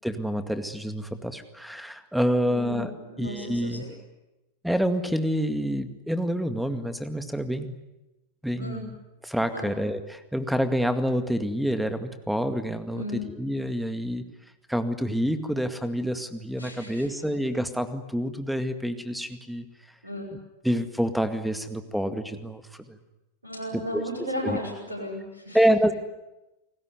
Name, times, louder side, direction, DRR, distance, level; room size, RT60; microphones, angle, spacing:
voice 1, 0.0-2.9 3.2-3.8 4.6-7.8 8.4-9.0 9.2-14.2 14.7-19.7 20.6-23.0 23.7-24.1 24.4-24.6 25.5-25.9, equal, ahead, 10 dB, 2.1 m, -27 dB
voice 2, 2.4-3.9 8.6-8.9 9.5-9.7 12.9-13.3 16.6-17.3 20.0-20.4 23.4-25.6, left 1 dB, 80° right, -1 dB, 6.8 m, -35 dB
29.0 x 20.0 x 9.7 m, 1.0 s
figure-of-eight pair, 90°, 0 cm